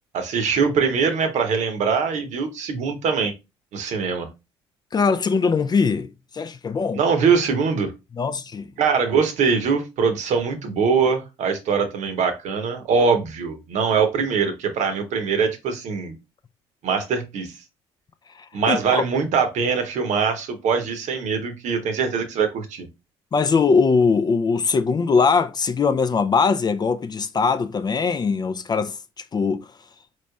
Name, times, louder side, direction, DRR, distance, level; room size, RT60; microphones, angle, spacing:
voice 1, 0.1-3.3 3.7-4.3 6.9-7.9 8.8-16.1 16.8-17.5 18.5-22.9, right 5 dB, 60° right, 0.9 m, -22 dB
voice 2, 4.9-7.0 8.2-8.7 18.7-19.0 23.3-29.0 29.3-29.7, left 5 dB, 30° left, 0.4 m, -21 dB
4.1 x 3.1 x 2.3 m
hypercardioid pair, 55°, 14 cm